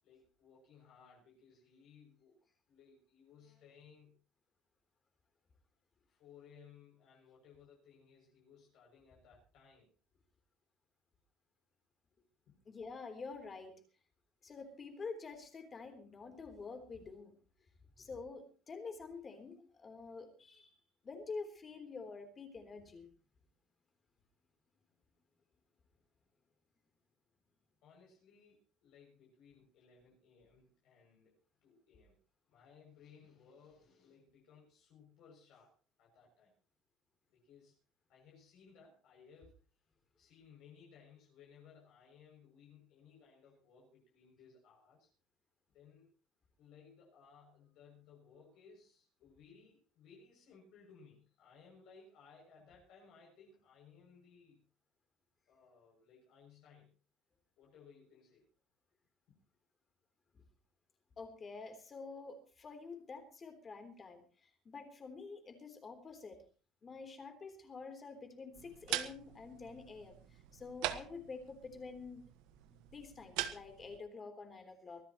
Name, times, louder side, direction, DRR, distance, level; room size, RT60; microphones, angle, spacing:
voice 1, 0.0-2.4 2.7-4.2 6.1-9.9 12.5-12.6 27.8-32.2 32.5-36.5 37.3-37.8 38.1-39.6 40.2-45.1 45.7-46.2 46.6-54.6 55.5-56.9 57.6-58.5 59.3-59.4, left 6 dB, 65° left, -3 dB, 7.2 m, -62 dB
voice 2, 12.7-13.8 14.4-17.3 18.0-20.7 21.0-23.1 61.2-66.4 66.8-72.3 72.9-75.0, left 4 dB, 25° left, 6 dB, 3.6 m, -48 dB
sound 1, 68.5-74.0, right 14 dB, 85° right, 1.4 m, -43 dB
23.5 x 15.5 x 3.1 m, 0.37 s
cardioid pair, 145°, 0 cm